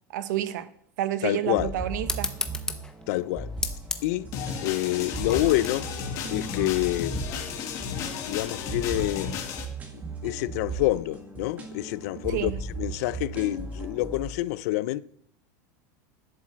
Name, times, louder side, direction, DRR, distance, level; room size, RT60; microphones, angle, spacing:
voice 1, 0.1-0.7 1.0-2.3 12.3-12.5, right 12 dB, 75° right, 0.9 m, -29 dB
voice 2, 1.2-1.7 3.1-3.5 4.0-4.3 4.6-5.9 6.3-7.2 7.8-9.3 9.9-12.5 12.8-15.0, left 17 dB, 55° left, 0.5 m, -27 dB
sound 1, 1.3-14.3, right 3 dB, 15° right, 1.9 m, -38 dB
sound 2, 2.0-7.1, left 3 dB, 5° left, 0.7 m, -36 dB
sound 3, 4.3-9.7, left 7 dB, 35° left, 1.8 m, -33 dB
12.0 x 7.7 x 7.3 m
supercardioid pair, 175°, 10 cm